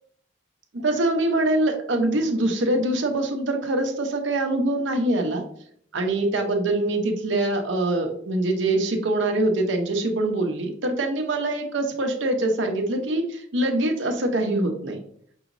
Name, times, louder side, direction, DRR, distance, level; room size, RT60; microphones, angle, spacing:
voice 1, 0.7-5.4 5.9-15.0, right 2 dB, 90° right, 4 dB, 0.8 m, -24 dB
5.5 x 3.0 x 2.6 m, 0.63 s
head